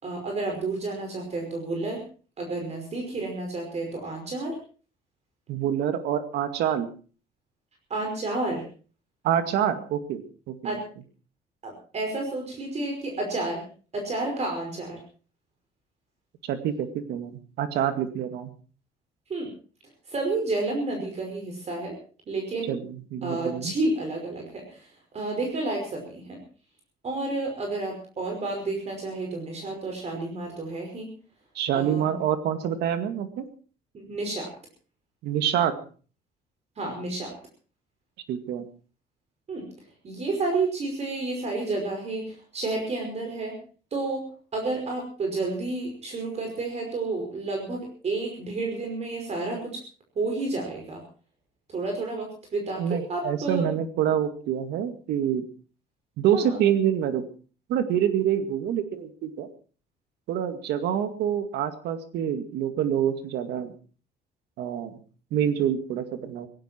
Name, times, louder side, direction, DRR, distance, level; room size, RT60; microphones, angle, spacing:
voice 1, 0.0-2.0 2.4-4.6 7.9-8.6 10.6-10.8 11.6-13.6 13.9-15.0 19.3-19.5 20.1-22.0 22.3-22.7 23.2-26.4 27.0-31.1 31.7-32.2 33.9-34.5 36.8-37.3 39.5-39.7 40.0-43.6 43.9-49.8 50.2-51.0 51.7-53.7 56.3-56.6, right 2 dB, 40° right, 2 dB, 5.5 m, -30 dB
voice 2, 5.5-6.9 9.2-10.7 16.4-18.5 22.7-23.7 31.6-33.5 35.2-35.7 38.3-38.7 52.8-55.5 56.2-57.2 57.7-59.5 60.3-63.7 64.6-65.0 65.3-66.5, right 9 dB, 80° right, 9 dB, 2.2 m, -26 dB
18.0 x 16.0 x 4.5 m, 0.39 s
cardioid pair, 110°, 17 cm